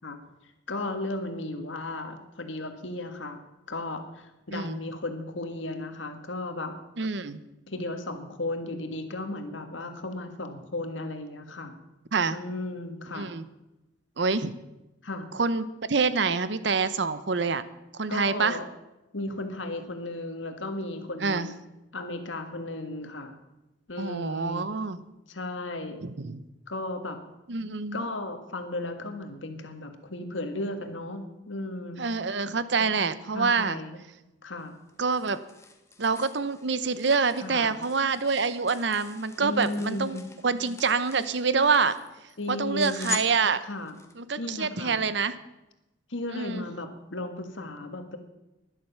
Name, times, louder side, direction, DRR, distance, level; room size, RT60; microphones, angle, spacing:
voice 1, 0.7-3.4 3.7-6.7 7.7-11.8 12.3-13.3 15.0-15.3 18.1-18.6 19.1-21.5 21.9-23.4 23.9-24.7 25.3-26.0 26.7-27.2 27.9-32.0 32.8-33.0 33.3-34.0 34.4-34.7 37.4-37.8 39.4-40.2 42.4-43.2 43.6-44.0 44.4-45.0 46.1-48.2, left 2 dB, 75° left, 6 dB, 1.7 m, -35 dB
voice 2, 7.0-7.4 12.1-12.4 13.1-13.5 14.2-14.6 15.3-17.6 17.9-18.6 21.2-21.5 24.0-25.0 26.0-26.4 27.5-28.0 32.0-33.8 35.0-35.4 36.0-40.2 40.4-42.0 42.5-43.6 44.2-45.4 46.3-46.6, right 4 dB, 60° right, 14 dB, 0.8 m, -26 dB
sound 1, 34.6-44.1, left 4 dB, 15° left, 1.2 m, -43 dB
12.0 x 11.0 x 6.9 m, 0.96 s
head